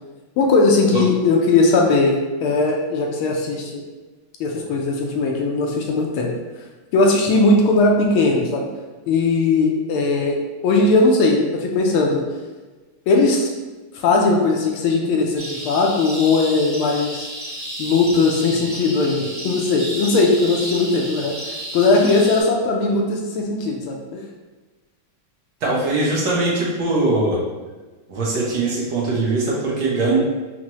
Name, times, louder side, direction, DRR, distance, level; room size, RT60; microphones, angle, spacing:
voice 1, 0.4-3.8 4.4-6.3 6.9-8.7 9.1-10.4 10.6-12.2 13.1-13.5 13.9-17.3 17.8-24.2, left 3 dB, 80° left, 0 dB, 1.4 m, -18 dB
sound 1, 15.4-22.4, right 1 dB, 35° right, 0.9 m, -32 dB
voice 2, 25.6-27.4 28.1-30.2, right 2 dB, 55° right, -5 dB, 1.3 m, -21 dB
5.9 x 2.1 x 3.0 m, 1.2 s
omnidirectional pair, 2.4 m